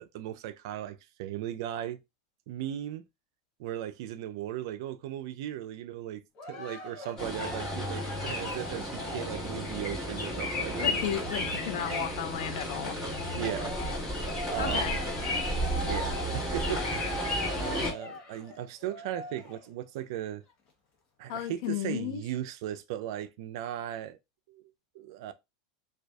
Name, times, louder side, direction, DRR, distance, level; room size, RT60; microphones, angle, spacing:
voice 1, 0.0-2.0 2.5-3.0 3.6-6.2 6.5-11.0 13.3-13.7 14.4-15.0 15.8-16.8 17.6-20.4 21.2-24.2 24.5-24.6 24.9-25.3, right 12 dB, 65° right, 0.3 m, -37 dB
Cheering, 6.4-12.7 13.1-19.7 20.3-20.4, left 1 dB, 35° left, 0.7 m, -41 dB
sound 1, 7.2-17.9, left 1 dB, 15° left, 1.3 m, -33 dB
voice 2, 10.8-13.0 14.6-15.0 21.3-22.2, left 10 dB, 65° left, 0.4 m, -34 dB
2.5 x 2.3 x 2.2 m
supercardioid pair, 145°, 3 cm